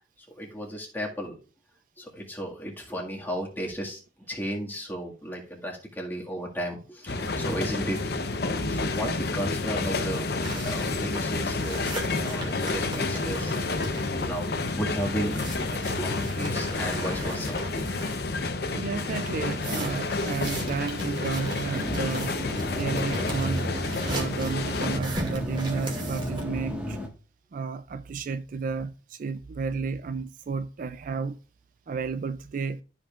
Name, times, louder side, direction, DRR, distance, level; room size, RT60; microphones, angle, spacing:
voice 1, 0.3-1.4 2.0-4.0 4.3-8.0 8.5-13.6 14.2-17.6, equal, 10° left, 1.9 m, -34 dB
sound 1, 7.1-25.0, left 3 dB, 65° left, 0.8 m, -30 dB
sound 2, 10.3-18.5 19.0-26.4, right 1 dB, 30° right, 2.2 m, -39 dB
voice 2, 18.7-22.3 22.8-23.7 24.0-27.0 27.5-31.4 31.9-32.8, right 5 dB, 50° right, 0.3 m, -32 dB
sound 3, 21.7-27.1, left 1 dB, 5° right, 1.5 m, -34 dB
12.5 x 5.3 x 2.4 m
head